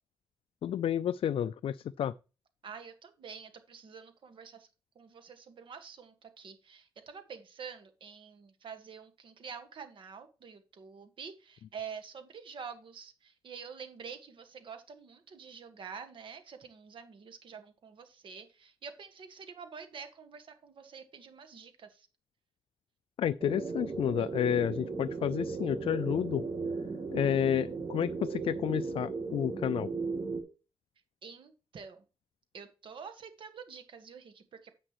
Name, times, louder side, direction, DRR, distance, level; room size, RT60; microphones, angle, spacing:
voice 1, 0.6-2.1 23.2-26.4 27.1-29.9, left 10 dB, 70° left, 0.4 m, -30 dB
voice 2, 2.6-4.7 4.9-22.1 31.2-32.0 32.5-34.7, right 6 dB, 60° right, 1.6 m, -47 dB
sound 1, 23.4-30.4, right 4 dB, 40° right, 2.3 m, -36 dB
9.9 x 7.7 x 3.1 m
wide cardioid pair, 170°, 10 cm